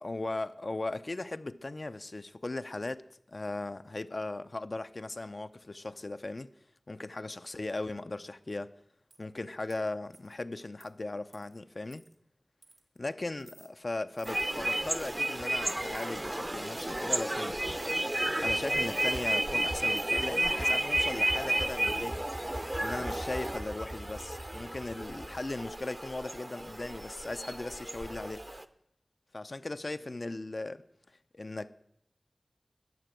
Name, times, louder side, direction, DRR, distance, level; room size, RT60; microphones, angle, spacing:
voice 1, 0.0-6.5 6.9-8.7 9.2-12.0 13.0-17.6 18.4-22.2 22.8-28.5 29.3-30.8 31.3-31.7, left 2 dB, 55° left, 0.5 m, -38 dB
sound 1, 9.1-9.2 9.7-9.8 10.1-10.4 10.8-10.9 11.3-11.6 11.9-12.1 12.6-13.0 13.4-13.7 14.1-14.4 14.9-15.3 15.7-16.1 16.7-17.3 17.6-18.3 18.6-19.4 20.0-22.1 22.8-24.6 25.0-25.4, right 2 dB, 75° right, 1.2 m, -56 dB
sound 2, 14.3-28.7, right 1 dB, 25° right, 0.6 m, -32 dB
12.0 x 6.8 x 8.9 m
wide cardioid pair, 65°, 0 cm